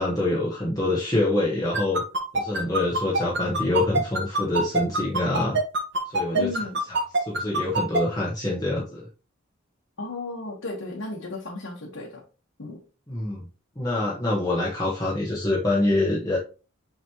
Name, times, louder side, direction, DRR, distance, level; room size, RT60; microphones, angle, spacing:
voice 1, 0.0-2.0 2.3-5.6 6.1-6.5 6.9-9.1 13.1-13.4 13.8-16.4, left 2 dB, 20° left, -5 dB, 1.1 m, -25 dB
sound 1, 1.7-8.0, right 3 dB, 55° right, 1.4 m, -23 dB
voice 2, 6.3-6.8 10.0-12.2 12.6-12.8, left 3 dB, 70° left, -3 dB, 1.4 m, -34 dB
5.9 x 5.2 x 3.0 m, 0.35 s
head